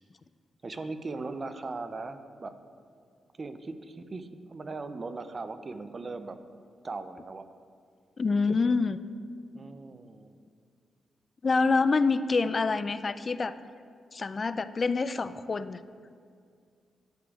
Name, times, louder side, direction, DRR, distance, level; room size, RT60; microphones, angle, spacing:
voice 1, 0.6-2.6 3.4-6.4 6.8-7.5 9.5-10.4, right 3 dB, 40° right, 10 dB, 0.5 m, -39 dB
voice 2, 8.2-9.0 11.4-13.5 14.1-15.8, left 4 dB, 40° left, 13 dB, 0.3 m, -26 dB
11.5 x 6.7 x 2.4 m, 2.3 s
cardioid pair, 75°, 0 cm